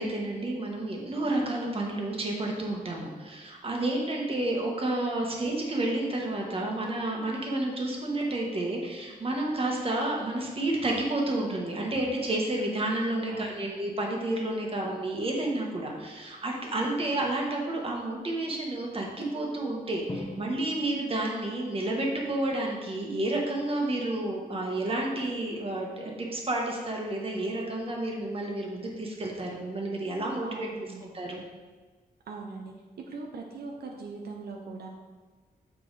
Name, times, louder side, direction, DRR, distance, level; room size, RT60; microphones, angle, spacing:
voice 1, 0.0-30.7 31.0-31.4, right 1 dB, 35° right, -1 dB, 1.2 m, -30 dB
voice 2, 13.3-13.7 30.4-31.1 32.3-32.7 33.1-34.9, right 3 dB, 80° right, 1 dB, 0.7 m, -41 dB
Drum, 20.1-21.8, left 1 dB, 20° left, 1.0 m, -41 dB
7.2 x 4.6 x 4.0 m, 1.4 s
wide cardioid pair, 140°, 16 cm